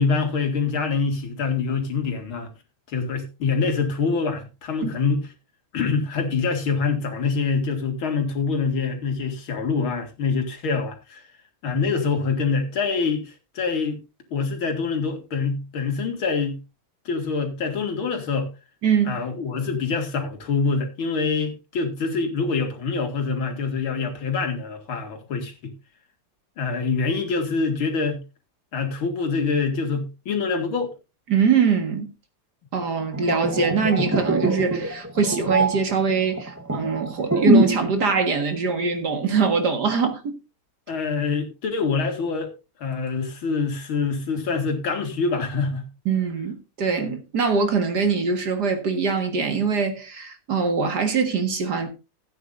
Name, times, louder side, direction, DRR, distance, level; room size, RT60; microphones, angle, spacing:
voice 1, 0.0-2.5 2.9-5.2 5.7-11.2 11.6-14.0 14.3-16.6 17.1-18.5 19.1-25.7 26.6-28.2 28.7-30.9 40.9-42.5 42.8-45.9, left 4 dB, 70° left, 2.9 m, -25 dB
voice 2, 18.8-19.2 31.3-32.1 32.7-40.4 46.1-51.9, right 5 dB, 50° right, 2.1 m, -23 dB
sound 1, 33.0-37.9 38.2-38.4, right 1 dB, 15° right, 0.5 m, -23 dB
16.0 x 9.3 x 2.6 m
omnidirectional pair, 2.4 m